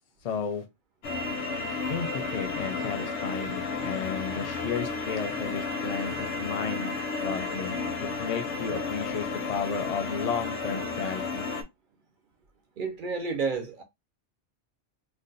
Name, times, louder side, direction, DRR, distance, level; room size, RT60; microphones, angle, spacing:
voice 1, 0.2-0.6 1.9-11.5, left 6 dB, 50° left, 0.5 m, -33 dB
sound 1, 1.0-11.6, left 4 dB, 85° left, 0.9 m, -32 dB
voice 2, 12.8-13.8, right 4 dB, 55° right, 0.6 m, -30 dB
2.5 x 2.1 x 3.8 m
omnidirectional pair, 1.2 m